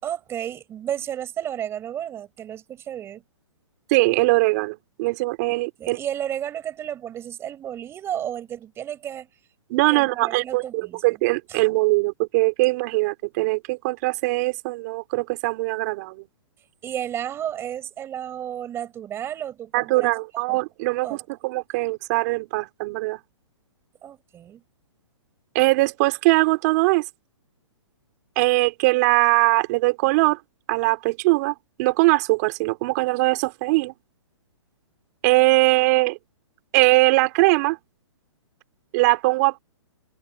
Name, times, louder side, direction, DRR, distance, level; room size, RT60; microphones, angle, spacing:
voice 1, 0.0-3.2 5.5-9.3 9.9-11.0 11.5-11.6 16.8-20.1 20.5-20.6 21.0-21.2 24.0-24.6, right 10 dB, 15° right, 6.6 m, -32 dB
voice 2, 3.9-6.0 9.7-16.2 19.7-23.2 25.5-27.0 28.4-30.4 30.7-33.9 35.2-36.2 36.7-37.8 38.9-39.6, right 23 dB, 35° right, 4.2 m, -21 dB
hypercardioid pair, 160°, 16 cm